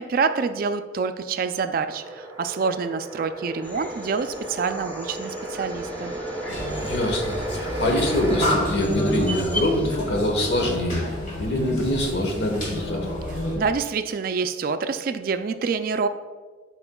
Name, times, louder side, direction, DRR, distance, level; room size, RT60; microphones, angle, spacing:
voice 1, 0.0-6.2 13.6-16.1, right 5 dB, 50° right, 9 dB, 0.3 m, -26 dB
sound 1, 1.9-8.5, right 1 dB, 20° right, 0.9 m, -33 dB
sound 2, 3.6-9.9, equal, 10° left, 0.5 m, -37 dB
sound 3, 6.5-13.6, equal, 45° left, 1.6 m, -29 dB
voice 2, 6.8-11.0 11.4-13.1, left 1 dB, 70° left, 2 dB, 1.1 m, -24 dB
11.0 x 4.3 x 2.2 m, 1.4 s
head